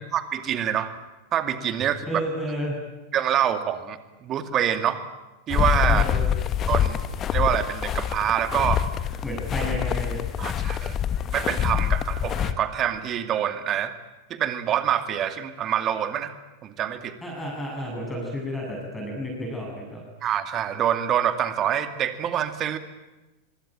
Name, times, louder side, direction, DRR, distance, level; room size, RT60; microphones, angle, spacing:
voice 1, 0.1-0.9 1.3-2.0 3.1-5.0 5.5-6.0 6.7-7.0 7.3-8.8 10.4-11.0 11.3-13.9 14.3-16.3 16.6-17.2 20.2-22.8, right 10 dB, 30° right, 9 dB, 2.3 m, -26 dB
voice 2, 2.1-2.8 5.9-6.4 9.2-10.2 17.2-20.0, equal, 5° left, -1 dB, 7.5 m, -31 dB
sound 1, 5.5-12.5, left 9 dB, 30° left, 1.6 m, -25 dB
25.5 x 24.5 x 9.1 m, 1.1 s
figure-of-eight pair, 90°, 0 cm